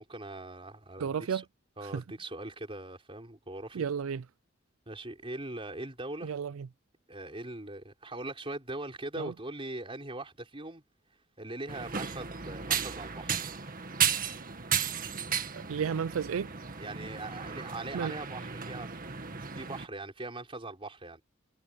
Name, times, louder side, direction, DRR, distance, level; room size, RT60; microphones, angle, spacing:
voice 1, 0.0-1.4 1.8-3.8 4.9-6.3 7.1-10.8 11.4-13.4 16.8-19.2 19.5-21.2, right 2 dB, 25° right, 4.4 m, -41 dB
voice 2, 1.0-1.4 1.9-2.0 3.7-4.2 6.2-6.7 9.2-9.3 15.5-16.5 17.9-18.1, right 7 dB, 80° right, 0.4 m, -32 dB
sound 1, 11.7-19.9, right 7 dB, 40° right, 1.9 m, -34 dB
head